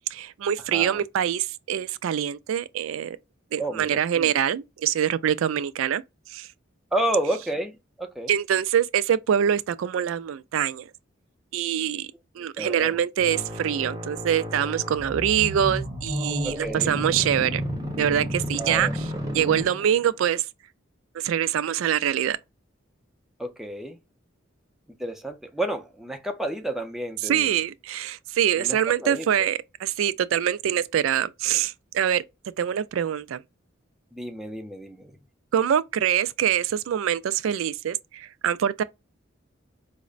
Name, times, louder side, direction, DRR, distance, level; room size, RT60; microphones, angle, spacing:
voice 1, 0.1-3.2 3.5-6.0 6.3-6.5 8.3-10.8 11.5-12.1 12.4-17.6 18.0-18.9 19.3-20.4 21.1-22.4 27.2-32.2 32.6-33.4 35.5-38.8, right 9 dB, 80° right, 0.3 m, -24 dB
voice 2, 0.7-1.0 3.6-4.3 6.9-8.3 12.6-13.0 16.4-16.9 18.6-18.9 23.4-24.0 25.0-27.6 28.6-29.3 34.1-35.2, right 1 dB, ahead, 0.5 m, -30 dB
sound 1, 13.2-20.1, equal, 20° right, 0.9 m, -32 dB
4.9 x 2.1 x 2.4 m
head